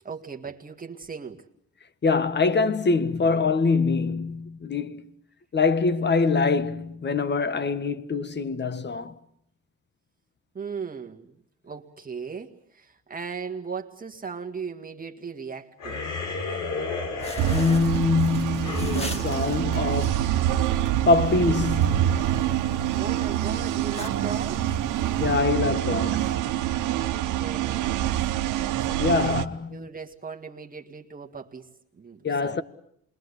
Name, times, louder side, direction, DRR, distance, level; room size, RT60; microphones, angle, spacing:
voice 1, 0.0-1.5 10.5-11.4 11.6-16.0 22.9-24.7 27.3-28.1 28.8-29.3 29.7-32.6, right 5 dB, 30° right, 1.8 m, -38 dB
voice 2, 2.0-5.1 5.5-9.2 17.5-20.3 21.1-22.3 25.2-26.3 29.0-29.7 32.2-32.6, left 4 dB, 35° left, 1.5 m, -24 dB
sound 1, 15.8-20.5, left 4 dB, 85° left, 6.1 m, -33 dB
sound 2, 17.2-25.4, left 1 dB, 20° left, 2.4 m, -43 dB
sound 3, 17.4-29.4, right 12 dB, 85° right, 1.2 m, -26 dB
28.0 x 22.0 x 8.3 m
cardioid pair, 90°, 30 cm